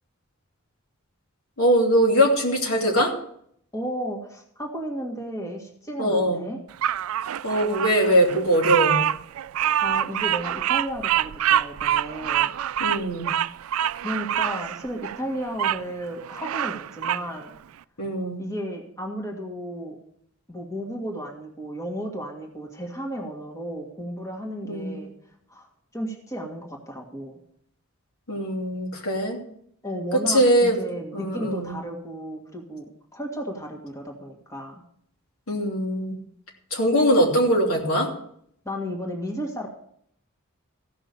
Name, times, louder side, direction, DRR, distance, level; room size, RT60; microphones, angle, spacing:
voice 1, 1.6-3.1 6.0-6.4 7.4-9.0 12.8-13.3 18.0-18.4 24.7-25.0 28.3-29.4 30.3-30.8 31.1-31.8 35.5-36.2 36.7-38.1, equal, 85° left, 0 dB, 2.9 m, -21 dB
voice 2, 3.7-6.6 9.8-12.6 14.0-17.5 18.4-20.0 20.5-25.1 25.5-25.7 25.9-27.4 29.8-32.9 33.1-34.8 38.7-39.7, equal, 15° left, -1 dB, 1.8 m, -33 dB
Bird vocalization bird call bird song, 6.8-15.8 16.2-17.3, right 11 dB, 85° right, 0.3 m, -25 dB
15.0 x 6.1 x 6.8 m, 0.68 s
head